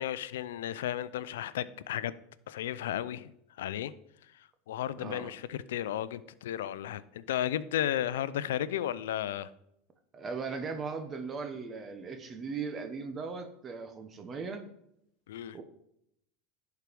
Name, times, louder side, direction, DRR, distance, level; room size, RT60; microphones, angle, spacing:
voice 1, 0.0-2.1 2.5-3.3 3.6-3.9 4.7-9.5 15.3-15.6, left 11 dB, 85° left, 16 dB, 0.5 m, -34 dB
voice 2, 5.0-5.3 10.1-14.7 15.5-15.6, right 5 dB, 30° right, 6 dB, 1.2 m, -38 dB
11.0 x 4.7 x 5.3 m, 0.76 s
hypercardioid pair, 100°, 0 cm